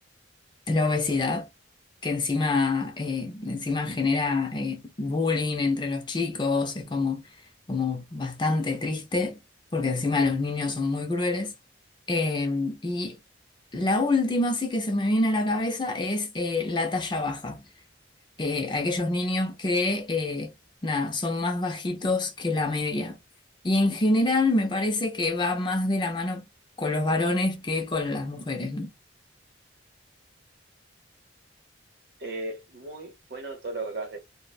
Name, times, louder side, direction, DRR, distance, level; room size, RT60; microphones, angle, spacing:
voice 1, 0.7-1.5 2.0-7.2 7.7-9.4 9.7-11.5 12.1-13.2 13.7-17.6 18.4-20.5 20.8-23.2 23.6-26.4 26.8-28.9, left 2 dB, 25° left, 0.4 m, -26 dB
voice 2, 32.2-34.2, right 2 dB, 55° right, 0.8 m, -36 dB
2.4 x 2.0 x 2.5 m
head